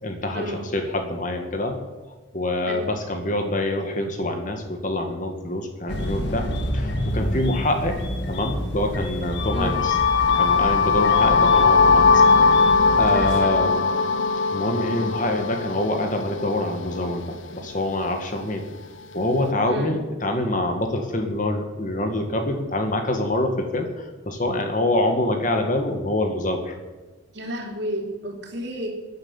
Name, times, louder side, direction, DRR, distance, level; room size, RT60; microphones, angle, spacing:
voice 1, 0.0-1.8 2.3-6.5 6.7-8.0 8.3-10.0 10.2-12.2 12.5-13.7 14.5-18.6 19.1-26.7, left 1 dB, 40° left, 4 dB, 1.9 m, -25 dB
sound 1, 5.9-13.4, left 1 dB, 55° left, 1.7 m, -29 dB
sound 2, 9.4-17.3, left 5 dB, 75° left, 0.8 m, -20 dB
voice 2, 9.5-9.9 13.1-13.6 19.7-19.9 27.3-28.9, right 1 dB, 55° right, 1 dB, 3.3 m, -31 dB
16.5 x 10.0 x 7.3 m, 1.3 s
head